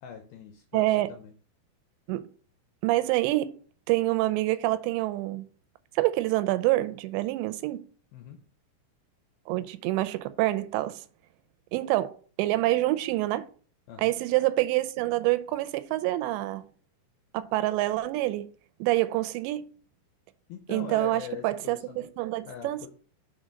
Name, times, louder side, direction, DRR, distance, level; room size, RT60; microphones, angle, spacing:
voice 1, 0.0-1.3 8.1-8.4 13.9-14.1 20.5-22.1 22.4-22.9, left 7 dB, 80° left, 2.3 m, -42 dB
voice 2, 0.7-1.1 2.1-2.3 2.8-3.5 3.9-5.4 6.0-7.8 9.5-11.0 11.7-13.5 14.0-16.6 17.3-18.5 18.8-19.6 20.7-22.9, right 17 dB, 85° right, 2.8 m, -27 dB
6.3 x 4.2 x 5.1 m
omnidirectional pair, 5.0 m